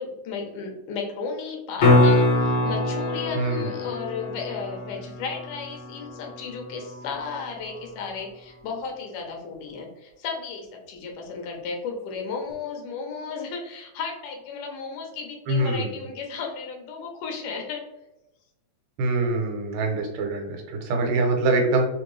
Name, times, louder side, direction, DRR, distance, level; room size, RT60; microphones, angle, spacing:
voice 1, 0.0-17.8, left 5 dB, 80° left, 2 dB, 2.4 m, -34 dB
sound 1, 1.8-7.8 12.5-12.6, left 2 dB, 55° left, 1.7 m, -24 dB
voice 2, 3.3-3.7 15.5-15.9 19.0-21.9, right 2 dB, 85° right, 2 dB, 2.4 m, -24 dB
5.6 x 2.6 x 3.2 m, 0.93 s
omnidirectional pair, 3.6 m